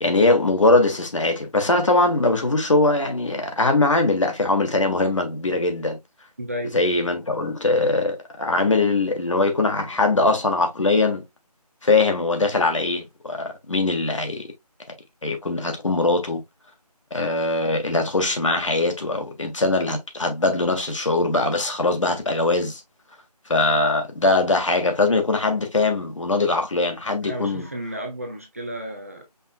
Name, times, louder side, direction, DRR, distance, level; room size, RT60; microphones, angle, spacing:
voice 1, 0.0-6.0 6.7-11.2 11.8-14.4 15.2-16.4 17.1-22.8 23.5-27.7, left 2 dB, 50° left, 1.5 m, -21 dB
voice 2, 6.4-6.8 27.2-29.3, equal, 20° right, 0.7 m, -32 dB
5.5 x 3.4 x 2.3 m
figure-of-eight pair, 165°, 21 cm